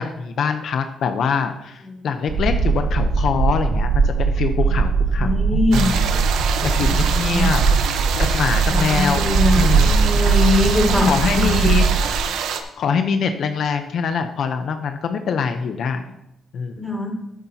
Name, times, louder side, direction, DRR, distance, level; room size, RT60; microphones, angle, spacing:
voice 1, 0.0-6.0 6.6-7.6 8.2-9.2 9.6-9.9 11.0-11.9 12.8-16.1 16.5-16.9, left 6 dB, 65° left, 7 dB, 0.7 m, -24 dB
sound 1, 2.3-12.2, right 4 dB, 60° right, 1.4 m, -20 dB
voice 2, 5.2-5.9 6.8-7.5 8.6-11.7 16.8-17.1, left 2 dB, ahead, -2 dB, 3.9 m, -22 dB
sound 2, 5.7-12.6, right 7 dB, 80° right, 0.9 m, -26 dB
13.0 x 8.5 x 2.8 m, 0.85 s
cardioid pair, 90°, 0 cm